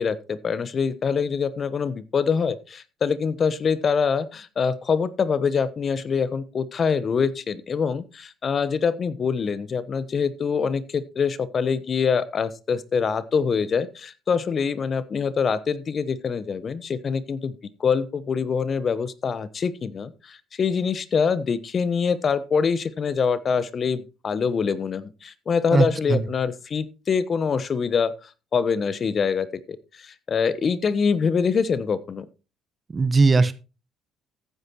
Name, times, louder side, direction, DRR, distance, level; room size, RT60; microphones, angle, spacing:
voice 1, 0.0-17.5 17.8-32.3, left 6 dB, 45° left, 16 dB, 1.0 m, -25 dB
voice 2, 25.7-26.3 32.9-33.5, right 3 dB, 30° right, 14 dB, 1.2 m, -19 dB
14.5 x 9.5 x 2.9 m, 0.31 s
hypercardioid pair, 55°, 0 cm